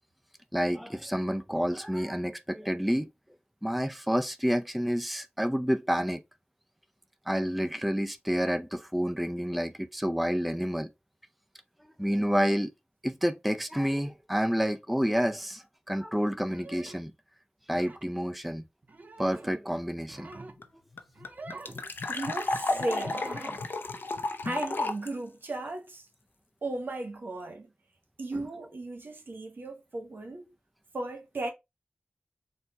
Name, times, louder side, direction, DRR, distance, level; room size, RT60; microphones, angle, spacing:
voice 1, 0.5-3.1 3.6-6.2 7.3-10.9 12.0-12.7 13.0-17.1 17.7-18.6 19.2-20.3, equal, ahead, 0.4 m, -29 dB
sound 1, 16.4-17.1 17.7-18.1 18.8-19.6 19.9-20.6 21.1-21.8 22.5-23.7, right 3 dB, 55° right, 0.7 m, -45 dB
sound 2, 20.3-20.4 20.6-20.7 21.0-25.1, left 3 dB, 80° left, 0.5 m, -32 dB
voice 2, 22.1-23.2 24.4-26.0 26.6-27.7 28.2-30.5 30.9-31.5, right 2 dB, 75° right, 1.1 m, -36 dB
4.2 x 2.2 x 4.1 m
wide cardioid pair, 55°, 4 cm